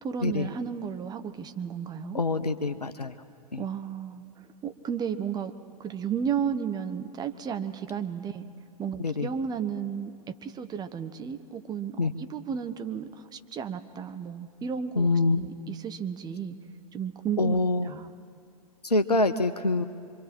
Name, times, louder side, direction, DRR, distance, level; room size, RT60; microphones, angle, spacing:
voice 1, 0.0-2.2 3.6-4.2 4.6-5.5 5.8-8.5 8.8-10.1 10.4-16.5 16.9-18.1, right 7 dB, 20° right, 8 dB, 0.9 m, -33 dB
voice 2, 2.1-3.1 3.5-3.6 9.0-9.3 12.0-12.1 15.0-15.4 17.4-17.9 18.8-19.9, left 3 dB, 90° left, 9 dB, 0.8 m, -25 dB
26.0 x 24.0 x 4.5 m, 2.3 s
figure-of-eight pair, 100°, 20 cm